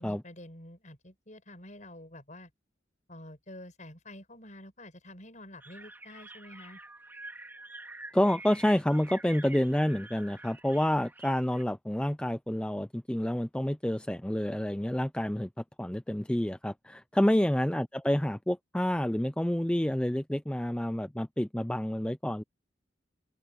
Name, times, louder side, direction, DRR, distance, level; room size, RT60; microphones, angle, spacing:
voice 1, 0.0-2.5 3.1-6.8, left 1 dB, 40° left, 6.2 m, -48 dB
sound 1, 5.6-11.6, right 2 dB, 10° right, 3.8 m, -48 dB
voice 2, 8.1-15.5 15.8-22.4, left 1 dB, 5° left, 0.4 m, -28 dB
open air
head